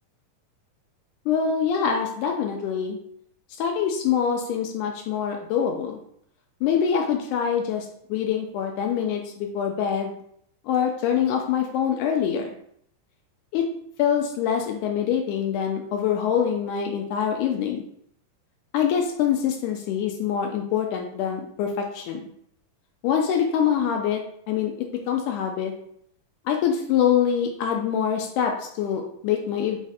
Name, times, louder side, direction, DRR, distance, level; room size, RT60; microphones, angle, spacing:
voice 1, 1.3-3.0 3.6-6.0 6.6-10.2 10.7-12.5 13.5-13.7 14.0-17.8 18.7-22.2 23.0-24.2 24.5-25.7 26.5-29.8, left 8 dB, 80° left, 3 dB, 2.0 m, -25 dB
5.0 x 2.4 x 4.1 m, 0.68 s
omnidirectional pair, 3.6 m